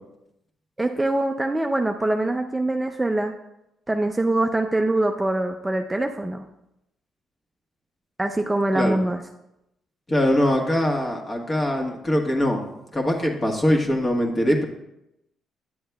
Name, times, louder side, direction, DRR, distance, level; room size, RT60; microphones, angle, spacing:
voice 1, 0.8-3.3 3.9-6.5 8.2-9.2, right 2 dB, 15° right, 4 dB, 0.4 m, -23 dB
voice 2, 10.1-12.6 12.9-14.6, left 1 dB, 30° left, 1 dB, 1.4 m, -22 dB
9.2 x 7.7 x 2.3 m, 0.86 s
cardioid pair, 90°, 0 cm